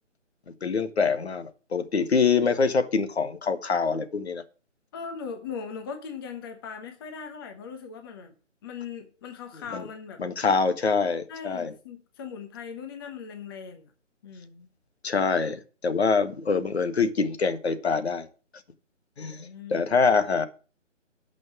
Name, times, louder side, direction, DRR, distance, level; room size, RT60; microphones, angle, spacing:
voice 1, 0.5-4.4 9.7-9.8 10.2-11.7 15.0-18.3 19.2-20.5, left 5 dB, 55° left, 9 dB, 1.6 m, -25 dB
voice 2, 4.9-8.3 8.6-10.2 11.3-13.9 14.2-14.7 19.2-19.9, left 6 dB, 20° left, 5 dB, 1.1 m, -39 dB
12.0 x 6.2 x 6.1 m, 0.37 s
figure-of-eight pair, 150°, 37 cm